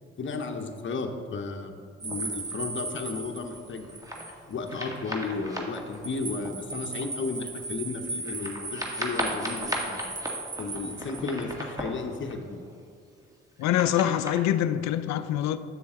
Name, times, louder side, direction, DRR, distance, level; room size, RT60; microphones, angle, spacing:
voice 1, 0.2-3.9 4.5-10.0 10.6-12.6, left 4 dB, 40° left, 0.9 m, -34 dB
sound 1, 2.0-4.4 4.7-4.8 5.7-11.4, right 3 dB, 25° right, 0.9 m, -37 dB
sound 2, 2.1-2.6 3.3-4.4 4.7-7.2 7.6-7.7 7.9-12.8 13.2-14.4, equal, 10° right, 1.6 m, -37 dB
voice 2, 13.6-15.6, left 11 dB, 70° left, 0.5 m, -25 dB
7.8 x 7.0 x 3.7 m
hypercardioid pair, 50°, 29 cm